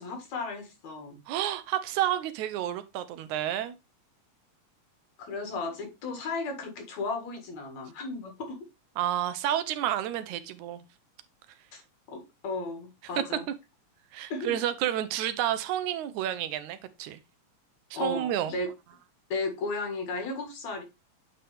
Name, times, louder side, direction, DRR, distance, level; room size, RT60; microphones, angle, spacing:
voice 1, 0.0-1.2 5.2-8.6 11.7-11.8 12.1-13.5 14.3-14.5 17.9-18.7 19.3-20.8, left 3 dB, 70° left, 3.1 m, -34 dB
voice 2, 1.3-3.8 9.0-10.9 13.2-13.3 14.1-17.2 17.9-18.6, right 11 dB, 80° right, 2.1 m, -30 dB
8.5 x 4.4 x 3.3 m
omnidirectional pair, 3.3 m